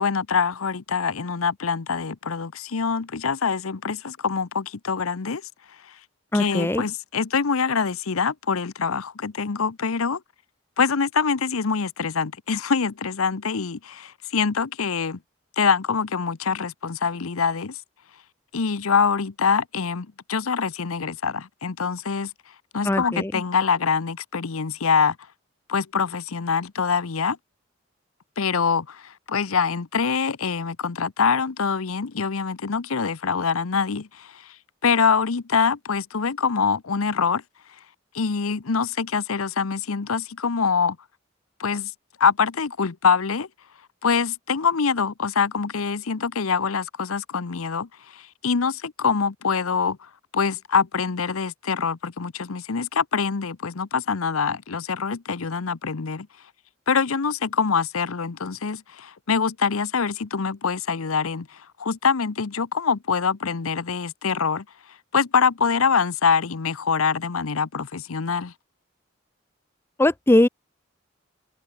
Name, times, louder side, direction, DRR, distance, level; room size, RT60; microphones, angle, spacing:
voice 1, 0.0-5.4 6.3-10.2 10.8-15.2 15.6-17.8 18.5-22.3 22.7-25.2 25.7-27.4 28.4-34.3 34.8-37.4 38.1-41.0 41.6-41.9 42.2-43.5 44.0-50.0 50.3-56.3 56.9-61.5 61.8-64.6 65.1-68.5, left 5 dB, 85° left, 0.8 m, -24 dB
voice 2, 6.3-6.8 22.8-23.4 70.0-70.5, left 1 dB, 10° left, 0.4 m, -20 dB
head